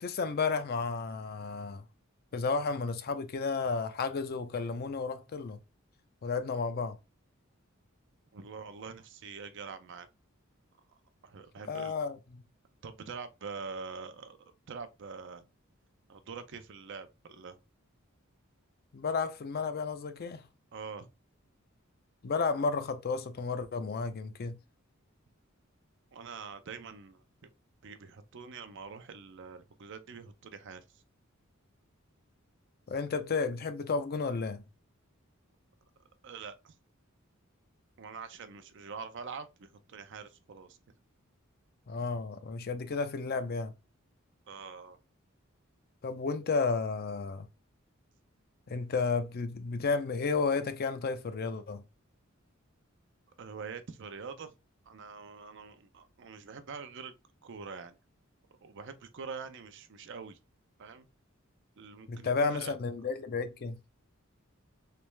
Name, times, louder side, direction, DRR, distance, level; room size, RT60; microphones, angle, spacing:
voice 1, 0.0-1.8 2.3-5.6 6.2-7.0 11.7-12.4 18.9-20.5 22.2-24.6 32.9-34.6 41.9-43.7 46.0-47.5 48.7-51.8 62.1-63.8, left 4 dB, 50° left, 0.5 m, -32 dB
voice 2, 8.3-10.1 10.9-11.0 11.2-11.9 12.8-14.4 14.7-15.5 16.1-17.6 20.7-21.1 26.1-27.2 27.8-30.8 36.2-36.7 38.0-40.8 44.5-45.0 48.7-48.8 53.4-54.5 54.9-57.1 57.4-58.0 58.6-60.4 60.8-61.1 61.8-62.7, right 5 dB, 60° right, 0.5 m, -44 dB
3.3 x 3.1 x 3.2 m
head